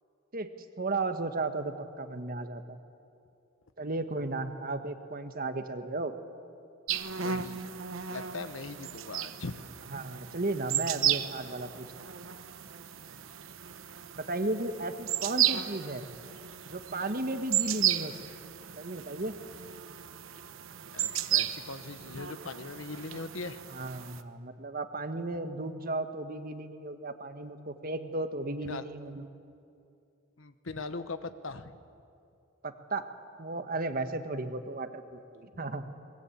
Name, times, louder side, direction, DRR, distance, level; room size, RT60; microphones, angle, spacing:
voice 1, 0.8-2.8 3.8-6.1 9.9-11.9 14.1-16.1 16.6-18.2 18.8-19.3 23.7-29.3 32.6-33.0 33.4-35.8, right 2 dB, 45° right, 8 dB, 1.5 m, -34 dB
sound 1, 6.9-24.2, right 11 dB, 75° right, 1.0 m, -34 dB
voice 2, 7.2-7.6 8.1-9.6 20.9-23.6 28.6-28.9 30.4-31.7, left 3 dB, 70° left, 11 dB, 1.2 m, -40 dB
23.0 x 21.0 x 8.6 m, 2.6 s
head